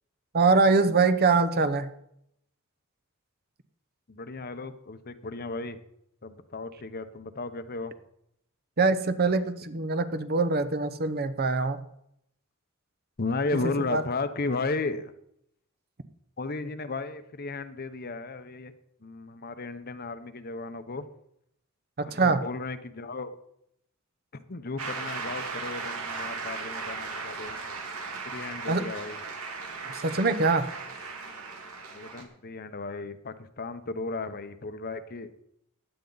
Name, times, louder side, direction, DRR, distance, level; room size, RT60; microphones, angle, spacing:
voice 1, 0.3-1.9 8.8-11.8 13.9-14.0 22.0-22.4 28.7-28.9 29.9-30.7, right 3 dB, 45° right, 11 dB, 0.8 m, -23 dB
voice 2, 4.1-5.8 6.2-7.9 13.2-15.1 16.4-18.7 19.0-21.1 22.1-23.3 24.5-27.6 28.3-29.2 31.9-35.3, left 3 dB, 45° left, 10 dB, 0.9 m, -34 dB
Shout / Cheering / Applause, 24.8-32.2, right 4 dB, 85° right, 2.3 m, -37 dB
15.5 x 10.5 x 4.0 m, 0.76 s
head